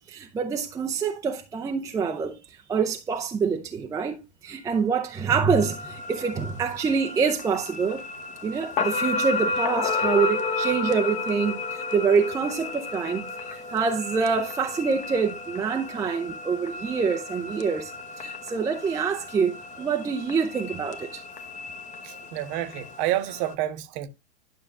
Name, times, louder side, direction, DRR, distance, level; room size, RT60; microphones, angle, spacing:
voice 1, 0.0-8.0 8.4-13.2 13.5-17.9 18.2-21.2, right 5 dB, 10° right, 0.6 m, -26 dB
sound 1, 5.6-23.5, left 4 dB, 20° left, 0.9 m, -33 dB
voice 2, 22.0-24.1, right 13 dB, 35° right, 0.9 m, -29 dB
11.5 x 6.3 x 2.3 m
figure-of-eight pair, 100°, 35 cm